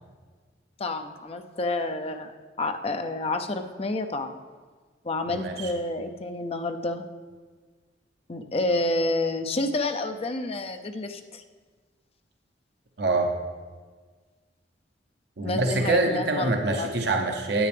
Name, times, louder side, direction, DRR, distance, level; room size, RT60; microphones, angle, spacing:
voice 1, 0.8-2.3 2.6-4.3 5.0-7.0 8.3-11.4 15.4-16.9, left 2 dB, 35° left, 7 dB, 0.5 m, -29 dB
voice 2, 5.3-5.7 13.0-13.3 15.4-17.7, right 2 dB, 60° right, 3 dB, 0.8 m, -25 dB
9.8 x 8.7 x 3.4 m, 1.5 s
head